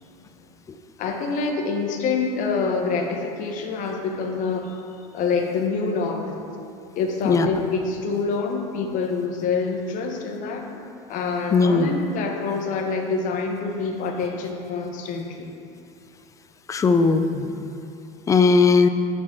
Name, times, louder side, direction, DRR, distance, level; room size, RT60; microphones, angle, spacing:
voice 1, 1.0-4.8 5.1-6.4 7.0-10.6 11.1-15.5, left 4 dB, 50° left, 2 dB, 1.0 m, -26 dB
voice 2, 11.5-11.9 16.7-17.7 18.3-18.9, left 4 dB, 20° left, 8 dB, 0.4 m, -18 dB
11.0 x 4.0 x 3.7 m, 2.6 s
supercardioid pair, 110°, 17 cm